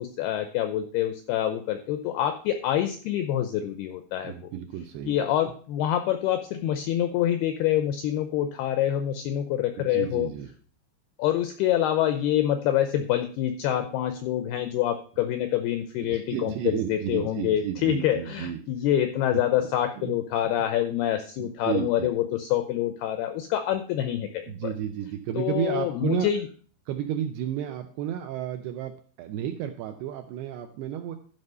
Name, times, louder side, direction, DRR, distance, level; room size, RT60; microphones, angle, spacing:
voice 1, 0.0-4.5 5.1-10.3 11.2-24.4 25.4-26.4, left 11 dB, 85° left, 8 dB, 2.2 m, -26 dB
voice 2, 4.2-5.3 9.8-10.5 16.0-18.6 19.3-19.4 20.0-20.2 21.4-22.1 24.5-26.3 26.9-31.2, right 10 dB, 80° right, 6 dB, 2.4 m, -32 dB
12.0 x 5.2 x 5.4 m, 0.43 s
omnidirectional pair, 5.3 m